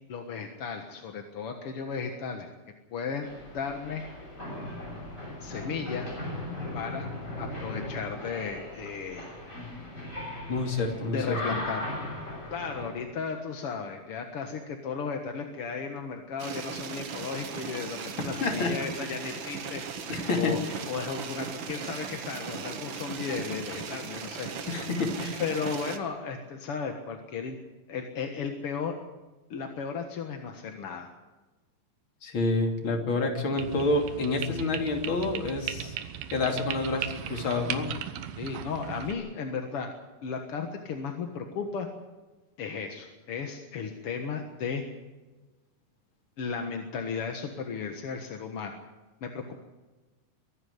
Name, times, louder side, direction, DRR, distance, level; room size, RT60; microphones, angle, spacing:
voice 1, 0.1-2.5 2.9-3.3 3.5-4.0 5.4-6.1 6.7-7.1 7.4-9.3 11.1-11.8 12.5-19.8 20.1-20.6 20.9-24.5 25.4-27.6 27.9-29.0 29.5-31.1 38.4-39.9 40.2-41.9 42.6-44.8 46.4-48.7 49.2-49.6, left 5 dB, 55° left, 4 dB, 1.8 m, -35 dB
sound 1, 3.2-12.9, left 1 dB, 20° left, 7.0 m, -38 dB
voice 2, 10.5-11.4 18.4-18.7 20.1-20.6 24.7-25.4 32.2-36.0 36.3-37.9, left 3 dB, 35° left, 3 dB, 3.1 m, -28 dB
sound 2, 16.4-26.0, right 6 dB, 70° right, 1.1 m, -37 dB
sound 3, 33.6-39.1, right 10 dB, 90° right, 3.0 m, -37 dB
23.0 x 12.0 x 9.7 m, 1.2 s
omnidirectional pair, 4.3 m